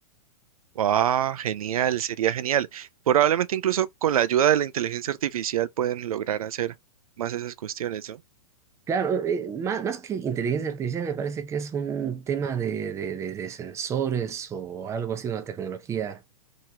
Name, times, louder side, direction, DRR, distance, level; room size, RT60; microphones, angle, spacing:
voice 1, 0.8-6.7 7.2-8.2, right 10 dB, 85° right, 0.4 m, -25 dB
voice 2, 8.9-16.2, right 7 dB, 15° right, 0.6 m, -29 dB
3.6 x 2.9 x 2.8 m
hypercardioid pair, 135°, 18 cm